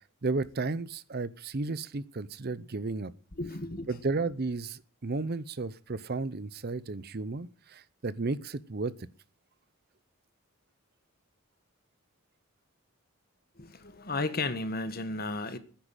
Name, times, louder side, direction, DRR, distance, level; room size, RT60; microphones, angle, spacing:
voice 1, 0.2-3.1 3.9-8.9, right 3 dB, 50° right, 0.7 m, -33 dB
voice 2, 3.4-3.9 13.6-15.6, left 2 dB, 45° left, 1.5 m, -34 dB
10.5 x 10.0 x 9.0 m
head